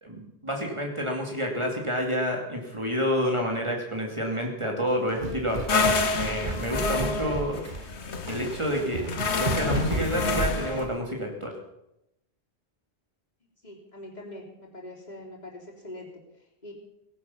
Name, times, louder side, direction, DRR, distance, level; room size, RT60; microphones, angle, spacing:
voice 1, 0.0-7.6 8.3-9.0 9.3-11.5, equal, 25° right, 0 dB, 2.8 m, -29 dB
sound 1, 4.9-11.0, right 3 dB, 45° right, 1.6 m, -33 dB
sound 2, 5.7-10.9, left 4 dB, 85° left, 1.5 m, -28 dB
voice 2, 13.6-16.1 16.3-16.7, left 1 dB, 40° left, -2 dB, 4.0 m, -43 dB
18.0 x 11.0 x 7.3 m, 0.85 s
omnidirectional pair, 1.1 m